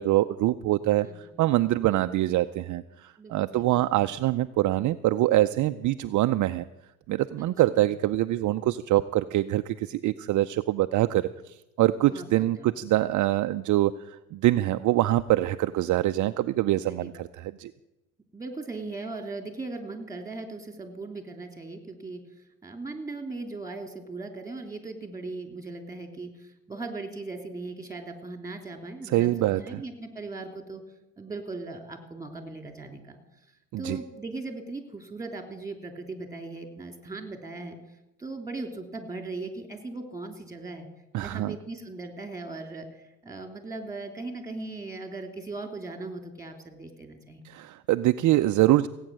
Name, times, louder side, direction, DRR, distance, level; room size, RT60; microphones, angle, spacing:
voice 1, 0.0-6.6 7.1-17.7 29.0-29.8 33.7-34.0 41.1-41.6 47.4-48.9, right 15 dB, 45° right, 10 dB, 0.6 m, -24 dB
voice 2, 1.0-1.3 3.2-3.8 7.4-7.5 12.0-12.7 16.9-17.1 18.3-22.2 22.6-30.8 31.2-33.2 33.8-37.8 38.2-40.9 41.2-42.9 43.2-47.6, right 3 dB, 10° right, 6 dB, 3.2 m, -38 dB
17.0 x 8.9 x 7.6 m, 0.96 s
supercardioid pair, 85°, 41 cm